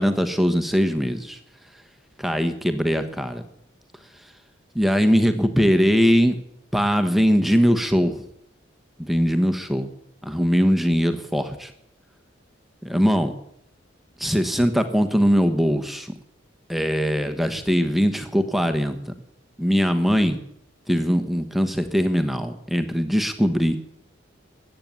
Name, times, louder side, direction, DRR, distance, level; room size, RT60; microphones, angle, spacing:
voice 1, 0.0-1.4 2.2-3.4 4.7-6.4 6.7-8.2 9.0-9.9 10.2-11.7 12.8-13.3 14.2-16.1 16.7-19.1 19.6-20.4 20.9-23.8, equal, ahead, 7 dB, 1.2 m, -21 dB
14.5 x 9.0 x 9.5 m, 0.74 s
head